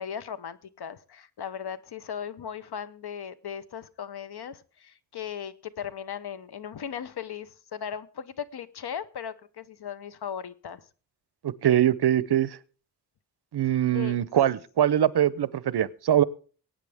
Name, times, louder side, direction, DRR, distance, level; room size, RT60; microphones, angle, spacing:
voice 1, 0.0-10.9 13.9-14.2, left 8 dB, 70° left, 14 dB, 0.9 m, -37 dB
voice 2, 11.4-12.6 13.5-16.2, right 11 dB, 70° right, 19 dB, 0.8 m, -23 dB
23.0 x 9.1 x 3.5 m, 0.39 s
wide cardioid pair, 150°, 41 cm